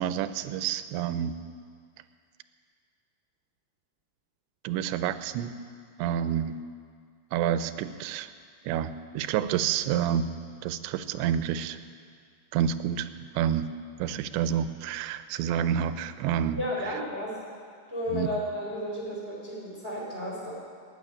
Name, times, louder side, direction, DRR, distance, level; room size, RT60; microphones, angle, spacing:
voice 1, 0.0-1.3 4.6-5.5 6.0-6.6 7.3-8.3 8.7-10.3 10.6-11.8 12.5-13.7 14.0-16.6 18.1-18.3, right 9 dB, 90° right, 12 dB, 2.8 m, -28 dB
voice 2, 16.6-17.4 17.9-20.5, left 1 dB, 15° right, -3 dB, 2.1 m, -33 dB
14.0 x 9.8 x 9.7 m, 2.1 s
omnidirectional pair, 5.1 m